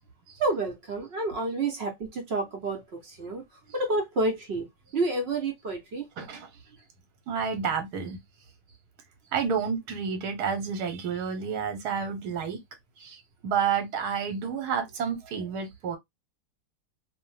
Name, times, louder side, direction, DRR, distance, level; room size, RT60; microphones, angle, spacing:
voice 1, 0.4-3.4 3.7-4.7 4.9-6.1, right 2 dB, 55° right, 0.7 m, -29 dB
voice 2, 6.2-6.5 7.3-8.2 9.3-12.6 13.0-16.0, right 6 dB, 80° right, 1.3 m, -30 dB
2.6 x 2.0 x 3.1 m
omnidirectional pair, 1.7 m